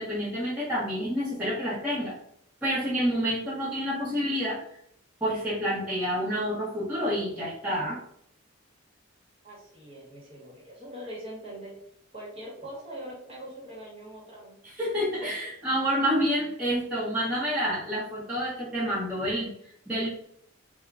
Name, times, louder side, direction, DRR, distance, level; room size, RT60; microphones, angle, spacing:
voice 1, 0.0-2.1 2.6-4.6 5.2-8.0 14.6-20.1, equal, 5° right, -9 dB, 0.9 m, -28 dB
voice 2, 9.4-11.7 12.1-14.6, right 1 dB, 25° right, -4 dB, 1.1 m, -42 dB
3.5 x 2.2 x 3.6 m, 0.70 s
head